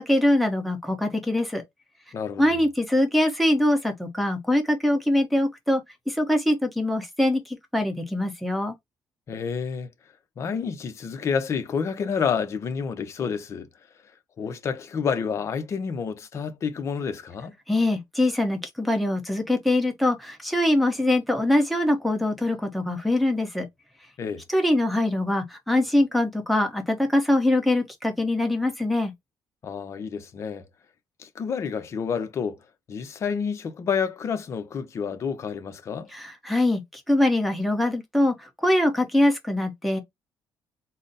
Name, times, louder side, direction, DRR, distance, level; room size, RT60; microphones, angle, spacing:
voice 1, 0.0-1.6 2.4-8.7 17.7-23.7 24.5-29.1 36.1-40.0, left 1 dB, ahead, 0.8 m, -23 dB
voice 2, 2.1-2.4 9.3-9.9 10.4-13.7 14.4-17.5 24.2-24.4 29.6-30.7 31.2-32.6 32.9-36.1, left 6 dB, 40° left, 0.6 m, -29 dB
3.9 x 2.0 x 3.9 m
cardioid pair, 150°, 8 cm